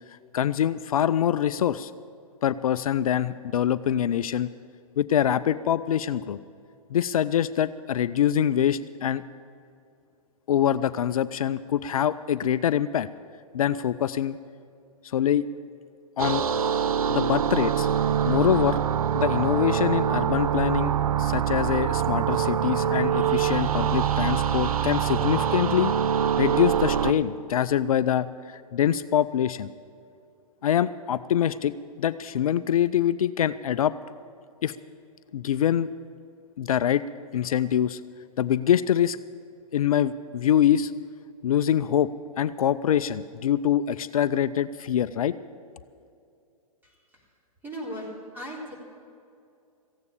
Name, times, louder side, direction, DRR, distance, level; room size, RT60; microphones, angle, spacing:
voice 1, 0.3-1.9 2.4-4.5 5.0-6.4 6.9-9.2 10.5-13.1 13.5-14.4 15.0-15.4 16.2-16.4 17.1-17.9 18.3-18.8 19.1-20.9 21.2-25.9 26.4-29.7 30.6-31.7 32.0-33.9 34.6-34.7 35.3-35.9 36.6-37.0 37.3-38.0 38.4-39.2 39.7-40.9 41.4-42.1 42.4-45.3, left 10 dB, 70° left, 14 dB, 0.5 m, -24 dB
sound 1, 16.2-27.1, right 9 dB, 70° right, 0.7 m, -24 dB
voice 2, 46.8-47.2 47.6-48.7, equal, 10° right, -3 dB, 3.9 m, -38 dB
15.0 x 9.4 x 8.5 m, 2.5 s
hypercardioid pair, 120°, 19 cm